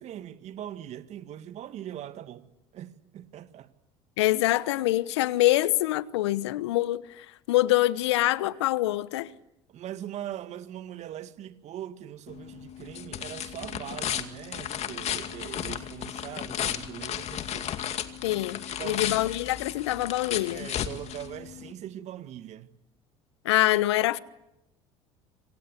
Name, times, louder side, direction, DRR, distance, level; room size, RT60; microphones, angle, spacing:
voice 1, 0.0-3.7 9.7-17.8 18.7-19.3 20.5-22.7, right 11 dB, 50° right, 2.0 m, -41 dB
voice 2, 4.2-9.3 18.2-20.7 23.4-24.2, left 16 dB, 80° left, 1.0 m, -25 dB
sound 1, 12.3-21.7, left 10 dB, 50° left, 2.4 m, -34 dB
27.0 x 25.5 x 8.3 m
hypercardioid pair, 70°, 14 cm